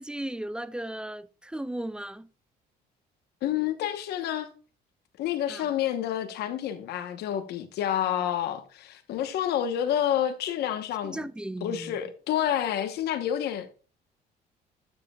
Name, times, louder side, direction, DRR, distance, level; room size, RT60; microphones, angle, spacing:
voice 1, 0.0-2.3 5.5-5.7 11.0-12.0, right 1 dB, 5° right, 0.4 m, -36 dB
voice 2, 3.4-4.5 5.2-11.2 11.6-13.7, left 10 dB, 75° left, 1.1 m, -29 dB
12.5 x 7.5 x 2.3 m
cardioid pair, 110°, 17 cm